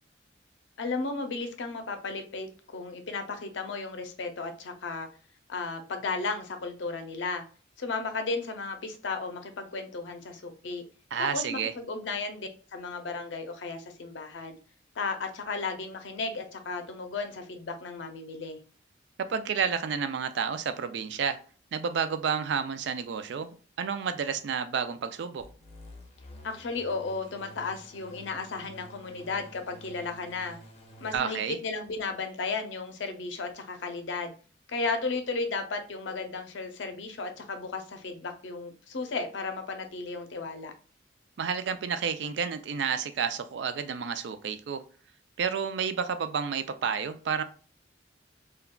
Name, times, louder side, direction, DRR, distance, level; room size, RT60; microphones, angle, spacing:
voice 1, 0.8-5.1 5.5-7.4 7.8-10.8 11.2-14.6 15.0-18.6 26.4-30.6 31.0-34.3 34.7-40.7, left 4 dB, 80° left, 0.5 m, -34 dB
voice 2, 11.1-11.7 19.3-21.4 21.7-25.4 31.1-31.6 41.4-44.8 45.4-47.4, right 6 dB, 65° right, 0.3 m, -30 dB
sound 1, 25.4-31.2, equal, 35° left, 0.6 m, -50 dB
3.6 x 2.2 x 2.2 m
head